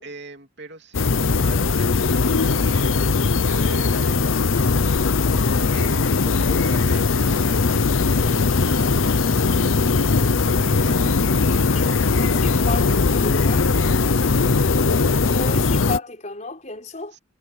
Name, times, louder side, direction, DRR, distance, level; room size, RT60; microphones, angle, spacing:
voice 1, 0.0-4.8 5.4-13.0 17.1-17.2, right 2 dB, 55° right, 3.1 m, -41 dB
sound 1, 0.9-16.0, left 4 dB, 70° left, 0.8 m, -19 dB
voice 2, 12.1-13.7 15.2-17.1, left 3 dB, 35° left, 5.1 m, -32 dB
head